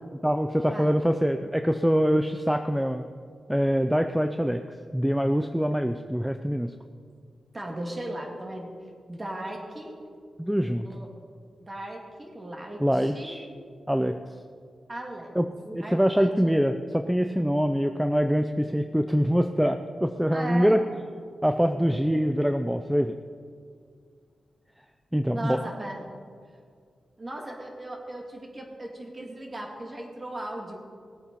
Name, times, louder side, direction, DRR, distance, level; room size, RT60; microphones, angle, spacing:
voice 1, 0.2-3.0 3.5-4.6 4.9-6.7 10.4-10.9 12.8-13.5 13.9-14.2 15.4-20.8 21.4-23.1 25.1-25.6, equal, 5° right, 7 dB, 0.5 m, -24 dB
voice 2, 7.5-8.7 9.1-10.0 10.8-11.1 11.6-13.4 14.9-15.4 15.7-16.5 20.3-20.7 25.3-26.0 27.2-30.9, right 1 dB, 30° right, 0 dB, 2.6 m, -37 dB
19.0 x 8.6 x 5.4 m, 2.1 s
cardioid pair, 85°, 0 cm